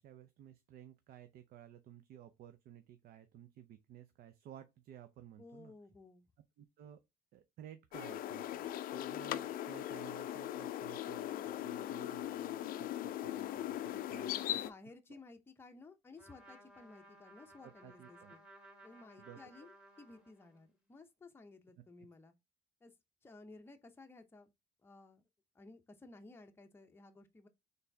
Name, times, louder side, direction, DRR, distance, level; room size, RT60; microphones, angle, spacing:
voice 1, 0.0-5.7 6.6-7.0 7.3-14.7 15.1-15.2 17.6-18.3 19.2-19.5 21.8-22.1, right 11 dB, 65° right, 0.5 m, -55 dB
voice 2, 5.4-6.3 13.9-18.4 18.8-22.3 22.8-22.9 23.2-24.5 24.8-25.2 25.5-27.5, left 3 dB, 15° left, 0.6 m, -56 dB
sound 1, 7.9-14.7, left 12 dB, 55° left, 0.4 m, -39 dB
Trumpet, 16.1-20.7, right 1 dB, 5° right, 1.4 m, -59 dB
4.2 x 3.3 x 2.7 m
cardioid pair, 110°, 17 cm